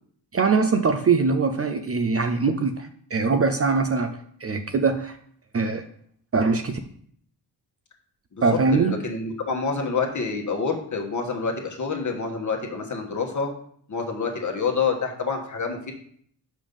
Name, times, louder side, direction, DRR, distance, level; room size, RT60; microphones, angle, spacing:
voice 1, 0.3-5.2 5.5-5.8 6.3-6.8 8.4-8.9, right 4 dB, 35° right, 7 dB, 0.5 m, -22 dB
voice 2, 8.3-13.5 13.9-15.9, left 5 dB, 45° left, 2 dB, 1.3 m, -27 dB
5.3 x 5.2 x 5.3 m, 0.62 s
wide cardioid pair, 125°, 43 cm